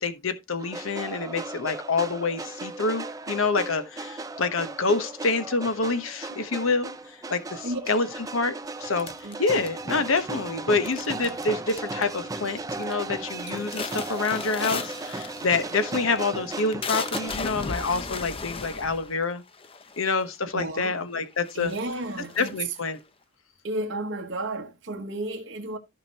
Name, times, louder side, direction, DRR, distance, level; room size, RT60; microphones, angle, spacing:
voice 1, 0.0-8.1 8.3-9.1 9.4-19.4 20.0-21.7 22.4-23.0, left 3 dB, 75° left, 1.1 m, -27 dB
sound 1, 0.6-17.4, right 3 dB, 15° right, 0.4 m, -36 dB
sound 2, 9.0-10.1 10.9-11.4 11.7-12.2 12.6-13.0 13.3-20.4 21.0-21.1 21.4-23.0, left 4 dB, 25° left, 0.6 m, -36 dB
voice 2, 20.5-20.9 21.5-22.7 23.6-25.8, right 2 dB, 60° right, 1.2 m, -32 dB
14.0 x 5.2 x 2.9 m
head